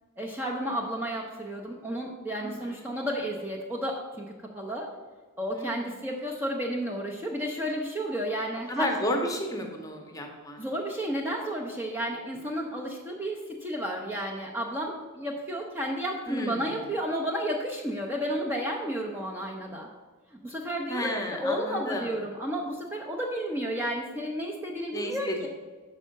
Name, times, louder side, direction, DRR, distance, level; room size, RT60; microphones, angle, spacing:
voice 1, 0.2-4.3 4.5-4.9 5.4-8.9 10.6-19.9 20.3-25.5, equal, 10° right, -2 dB, 0.6 m, -32 dB
voice 2, 2.4-3.0 5.5-6.1 8.7-10.6 16.3-16.8 20.9-22.1 24.9-25.5, equal, 15° left, 3 dB, 0.8 m, -32 dB
5.4 x 4.8 x 6.4 m, 1.3 s
head